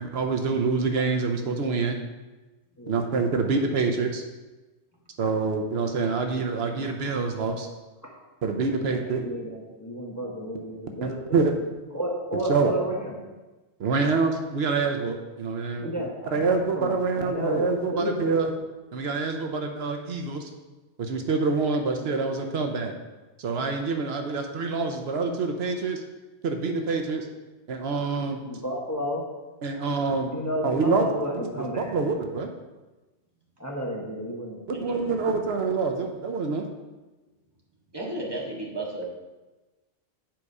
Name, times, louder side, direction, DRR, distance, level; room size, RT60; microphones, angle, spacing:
voice 1, 0.0-2.0 2.9-4.2 5.2-7.7 8.4-9.2 11.0-11.5 12.5-12.7 13.8-15.9 16.3-18.5 18.9-20.5 21.0-22.9 23.4-26.0 26.4-27.3 27.7-28.4 29.6-30.3 30.6-31.0 31.6-32.5 34.7-36.7, right 4 dB, 75° right, 4 dB, 1.0 m, -26 dB
voice 2, 8.7-11.5 11.9-13.2 15.8-17.6 17.9-18.4 28.4-29.2 30.3-31.9 33.6-35.0, equal, 15° left, -2 dB, 1.1 m, -32 dB
voice 3, 37.9-39.1, right 1 dB, 20° right, -4 dB, 1.7 m, -33 dB
7.6 x 4.9 x 5.4 m, 1.1 s
omnidirectional pair, 1.1 m